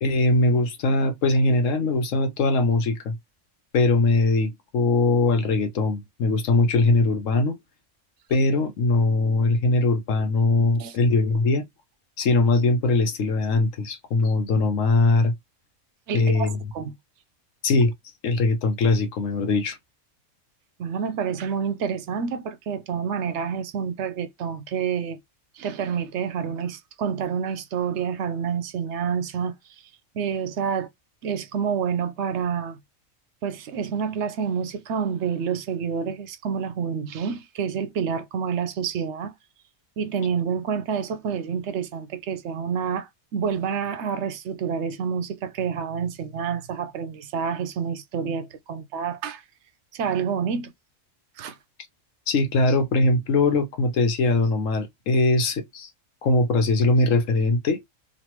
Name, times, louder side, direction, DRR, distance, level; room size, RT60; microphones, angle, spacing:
voice 1, 0.0-3.1 3.7-7.6 8.3-11.6 12.2-15.3 16.1-16.6 17.6-17.9 18.2-19.8 52.3-55.9 56.2-57.8, left 3 dB, 80° left, 1.2 m, -21 dB
voice 2, 16.1-16.9 20.8-25.2 25.6-29.6 30.1-30.9 31.2-32.8 33.4-39.3 40.0-49.4 49.9-50.7 51.4-51.6, right 7 dB, 70° right, 0.8 m, -28 dB
3.2 x 2.5 x 2.9 m
omnidirectional pair, 1.3 m